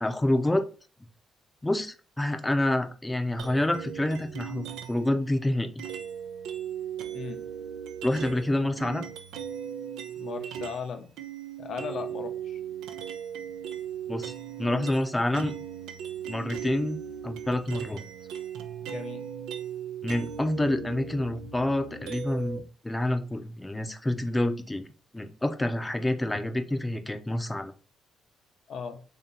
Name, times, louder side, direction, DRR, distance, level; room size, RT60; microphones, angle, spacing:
voice 1, 0.0-0.7 1.6-5.7 8.0-9.1 14.1-14.3 14.6-15.5 16.3-17.0 17.2-18.0 20.0-24.9 25.1-27.7, left 1 dB, 15° left, 0.6 m, -28 dB
sound 1, 3.4-5.1 5.8-10.9 11.2-22.6, right 8 dB, 90° right, 0.5 m, -38 dB
voice 2, 10.2-11.1 11.6-12.6 18.8-19.3 28.7-29.0, left 6 dB, 65° left, 0.8 m, -37 dB
3.3 x 2.9 x 3.9 m
cardioid pair, 85°, 0 cm